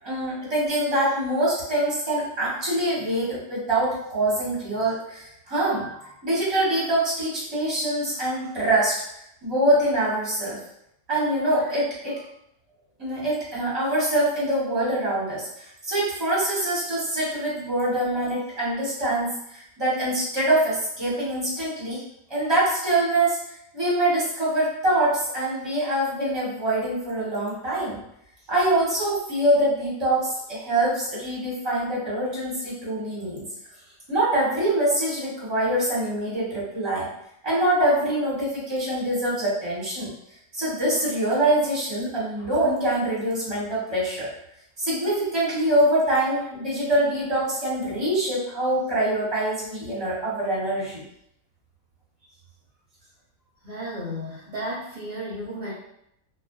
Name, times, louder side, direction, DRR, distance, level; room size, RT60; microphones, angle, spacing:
voice 1, 0.0-9.0 9.4-10.6 11.1-12.2 13.0-22.0 22.3-23.4 23.7-28.0 28.5-33.5 34.1-37.1 37.4-40.1 40.5-44.3 44.8-51.0, right 1 dB, 20° right, -8 dB, 1.0 m, -24 dB
voice 2, 53.6-55.7, equal, 45° right, -9 dB, 0.8 m, -33 dB
2.5 x 2.3 x 2.2 m, 0.77 s
omnidirectional pair, 1.3 m